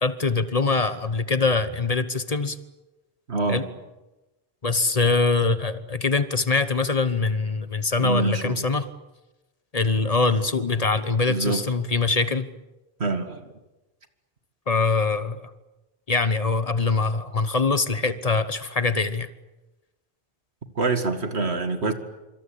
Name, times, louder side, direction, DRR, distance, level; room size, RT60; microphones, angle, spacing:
voice 1, 0.0-2.6 3.5-3.6 4.6-8.9 9.7-12.5 14.7-15.5 16.1-19.3, left 3 dB, 35° left, 13 dB, 1.1 m, -23 dB
voice 2, 3.3-3.6 8.0-8.6 11.2-11.7 13.0-13.5 20.8-21.9, right 3 dB, 90° right, 8 dB, 2.4 m, -25 dB
25.5 x 25.5 x 8.7 m, 1.1 s
omnidirectional pair, 1.1 m